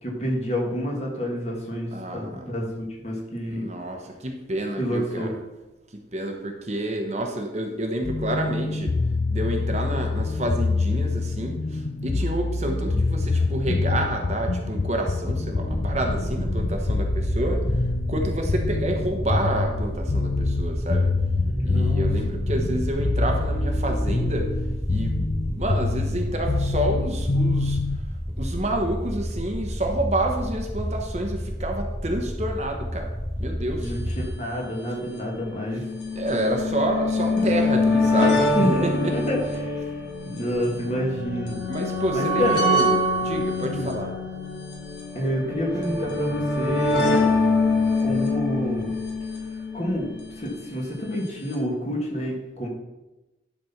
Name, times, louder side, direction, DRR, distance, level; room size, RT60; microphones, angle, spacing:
voice 1, 0.0-3.6 4.8-5.3 21.5-22.1 33.8-35.8 38.5-38.9 39.1-39.8 40.3-41.6 42.1-42.6 43.6-43.9 45.1-47.1 48.0-48.9 49.7-50.0 50.4-52.7, equal, 35° left, -2 dB, 1.9 m, -28 dB
voice 2, 1.9-2.5 3.5-5.3 6.1-8.9 9.3-21.1 21.6-24.5 24.9-27.8 28.4-33.1 33.4-33.9 36.1-39.1 41.7-44.1, right 1 dB, 35° right, 3 dB, 1.0 m, -29 dB
sound 1, 8.0-28.0, left 3 dB, 50° left, 0.6 m, -26 dB
sound 2, 15.7-34.4, equal, ahead, 0.4 m, -30 dB
sound 3, 33.8-33.9 34.1-34.2 35.1-50.3 51.3-51.4 51.5-51.6, left 2 dB, 70° left, 1.9 m, -25 dB
11.0 x 4.3 x 5.8 m, 1.0 s
head